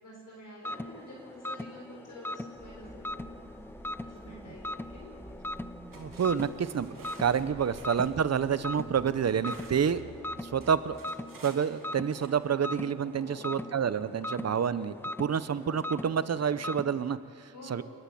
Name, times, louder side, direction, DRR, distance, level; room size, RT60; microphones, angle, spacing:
voice 1, 0.0-3.5 4.0-5.1 7.6-7.8 13.2-13.7 17.5-17.8, left 1 dB, 60° left, -2 dB, 4.6 m, -49 dB
sound 1, 0.6-17.2, left 1 dB, 5° left, 0.4 m, -41 dB
sound 2, 2.5-10.8, right 1 dB, 10° right, 2.6 m, -50 dB
sound 3, 5.5-5.6 5.9-10.0 10.6-12.3, right 4 dB, 70° right, 2.8 m, -53 dB
voice 2, 5.9-10.0 10.4-11.0 11.4-17.8, right 7 dB, 45° right, 14 dB, 0.7 m, -29 dB
28.5 x 11.5 x 7.8 m, 2.7 s
wide cardioid pair, 135°, 35 cm